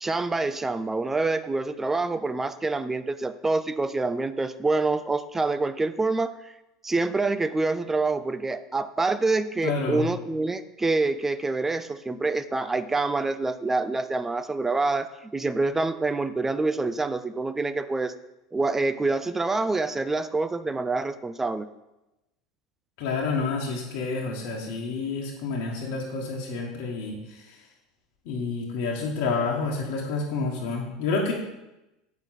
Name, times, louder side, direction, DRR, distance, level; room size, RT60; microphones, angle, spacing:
voice 1, 0.0-6.5 6.8-18.1 18.5-21.7, right 3 dB, 15° right, 13 dB, 0.5 m, -26 dB
voice 2, 9.6-10.1 23.0-27.6 28.2-31.3, left 4 dB, 60° left, -2 dB, 1.3 m, -29 dB
7.9 x 6.0 x 4.2 m, 0.95 s
figure-of-eight pair, 75°, 2 cm